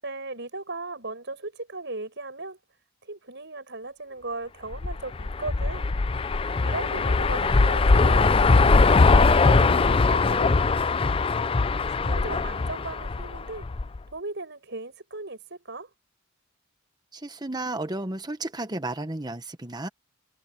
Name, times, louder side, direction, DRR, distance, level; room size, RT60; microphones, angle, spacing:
voice 1, 0.0-2.6 3.0-5.9 6.6-11.1 11.9-13.7 14.1-15.9, right 2 dB, 55° right, 7.9 m, -37 dB
sound 1, 4.7-14.0, left 3 dB, 25° left, 0.4 m, -21 dB
voice 2, 17.1-19.9, right 2 dB, 20° right, 1.2 m, -33 dB
head